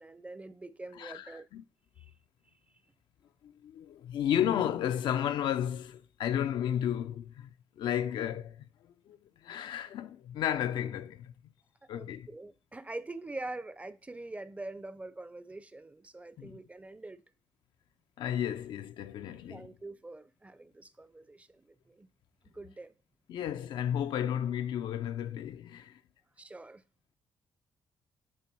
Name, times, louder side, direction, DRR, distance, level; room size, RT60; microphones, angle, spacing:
voice 1, 0.0-1.5 2.0-2.1 11.9-17.2 19.5-22.1 22.4-23.0 26.4-26.8, right 2 dB, 15° right, 0.6 m, -44 dB
voice 2, 1.0-1.6 3.4-8.7 9.1-11.3 11.9-12.3 16.4-16.6 18.2-19.7 23.3-26.0, left 10 dB, 80° left, 0.5 m, -33 dB
8.5 x 3.4 x 4.5 m
cardioid pair, 75°, 8 cm